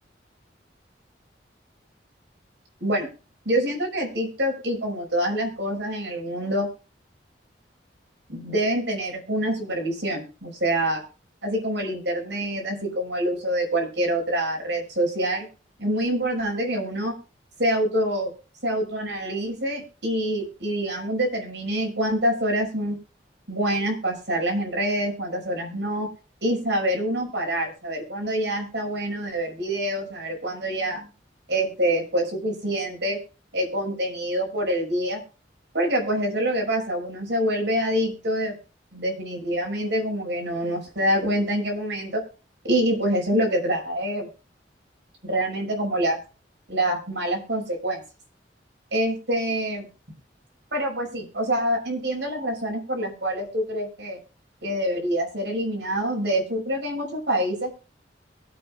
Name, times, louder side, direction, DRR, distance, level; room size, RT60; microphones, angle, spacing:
voice 1, 3.4-6.7 8.3-11.0 11.4-15.5 15.8-17.1 17.6-18.3 18.6-23.0 23.5-26.1 26.4-31.1 31.5-33.2 33.5-35.2 35.7-38.5 38.9-42.2 42.6-44.3 45.3-46.2 46.7-48.0 48.9-49.9 50.7-54.2 54.6-57.7, right 1 dB, 75° right, -1 dB, 6.2 m, -26 dB
23.0 x 8.6 x 2.4 m, 0.34 s
head